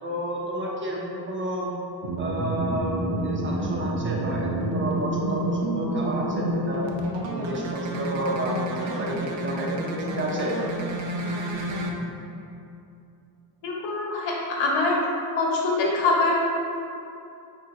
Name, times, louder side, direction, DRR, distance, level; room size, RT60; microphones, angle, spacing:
voice 1, 0.0-1.7 2.2-2.9 3.2-6.9 7.3-10.6, right 1 dB, 25° right, -4 dB, 0.8 m, -30 dB
sound 1, 2.0-11.9, right 1 dB, 75° right, 0.6 m, -29 dB
voice 2, 13.6-15.0 15.4-16.3, left 3 dB, 80° left, -2 dB, 0.9 m, -24 dB
6.0 x 2.6 x 2.3 m, 2.6 s
cardioid pair, 80°, 44 cm